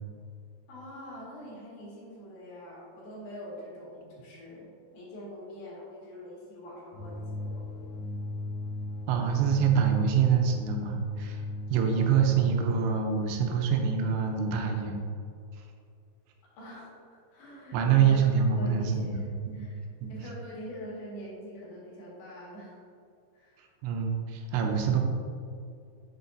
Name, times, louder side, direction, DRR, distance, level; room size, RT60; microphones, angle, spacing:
voice 1, 0.7-4.7 4.9-7.9 16.6-18.2 18.6-19.8 20.1-22.8 23.3-23.7, equal, 65° left, -6 dB, 3.8 m, -44 dB
sound 1, 6.9-12.7, left 2 dB, 85° left, 3.4 m, -37 dB
voice 2, 9.1-15.0 15.6-15.7 17.7-19.6 20.0-20.1 23.6-25.0, right 7 dB, 90° right, 3 dB, 2.8 m, -26 dB
8.4 x 7.1 x 2.7 m, 2.4 s
omnidirectional pair, 4.9 m